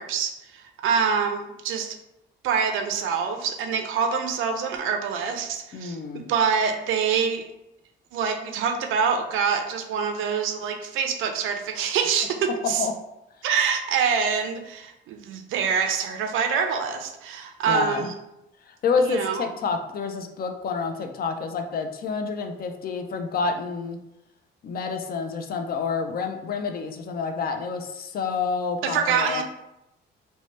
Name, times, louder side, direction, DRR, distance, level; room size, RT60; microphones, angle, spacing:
voice 1, 0.0-2.0 2.4-7.4 8.1-12.9 13.4-18.1 19.0-19.5 28.8-29.4, right 6 dB, 85° right, 5 dB, 0.4 m, -25 dB
voice 2, 5.7-6.2 12.6-12.9 17.7-18.1 18.6-24.0 24.6-29.4, left 5 dB, 50° left, 6 dB, 0.4 m, -28 dB
2.7 x 2.1 x 3.1 m, 0.89 s
cardioid pair, 90°, 20 cm